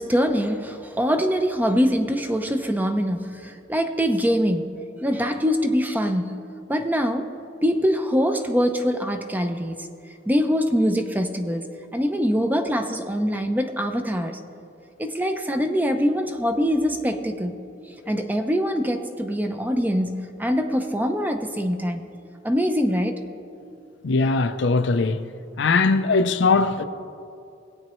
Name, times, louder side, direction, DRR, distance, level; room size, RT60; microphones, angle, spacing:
voice 1, 0.0-4.7 5.0-6.3 6.7-7.3 7.6-9.9 10.3-14.4 15.0-17.5 18.1-22.0 22.4-23.2, equal, 10° right, 0.6 m, -23 dB
voice 2, 24.0-25.2 25.6-26.8, left 3 dB, 70° left, 0.5 m, -20 dB
21.0 x 8.6 x 3.1 m
head